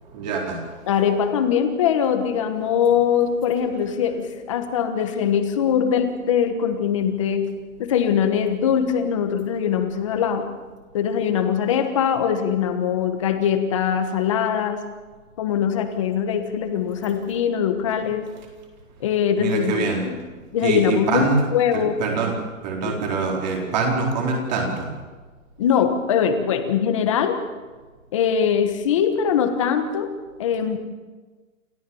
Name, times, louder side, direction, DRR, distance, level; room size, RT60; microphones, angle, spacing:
voice 1, 0.1-0.7 19.4-20.1 20.6-21.4 21.7-22.3 22.6-24.9, right 4 dB, 30° right, 1 dB, 4.1 m, -24 dB
voice 2, 0.9-7.5 7.8-10.4 10.9-14.8 15.4-18.3 19.0-20.2 20.5-21.2 21.5-22.0 22.9-23.0 25.6-27.4 28.1-30.1 30.4-30.8, left 8 dB, 20° left, 7 dB, 1.3 m, -22 dB
27.5 x 14.0 x 7.1 m, 1.4 s
hypercardioid pair, 175°, 42 cm